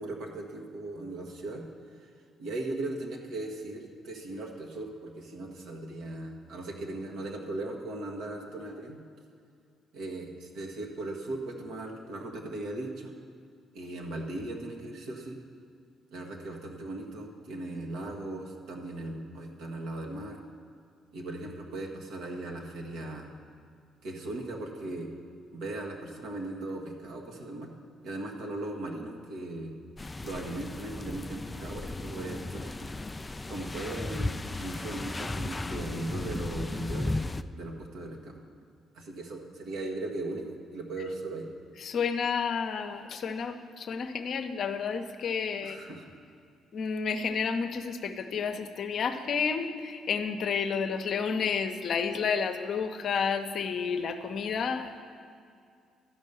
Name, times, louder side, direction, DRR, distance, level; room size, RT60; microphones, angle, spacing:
voice 1, 0.0-1.6 2.0-2.1 2.4-9.0 9.9-13.1 13.7-15.4 16.1-20.4 21.1-23.3 24.0-25.1 25.5-27.7 28.0-29.7 30.2-32.9 33.5-37.2 37.5-38.4 38.9-41.5 45.6-46.1, right 2 dB, 75° right, 0 dB, 1.3 m, -38 dB
sound 1, 30.0-37.4, left 2 dB, 25° left, 0.4 m, -35 dB
voice 2, 41.8-45.9 46.7-55.0, left 6 dB, 60° left, 7 dB, 0.7 m, -31 dB
12.5 x 5.4 x 6.9 m, 2.3 s
hypercardioid pair, 55°, 0 cm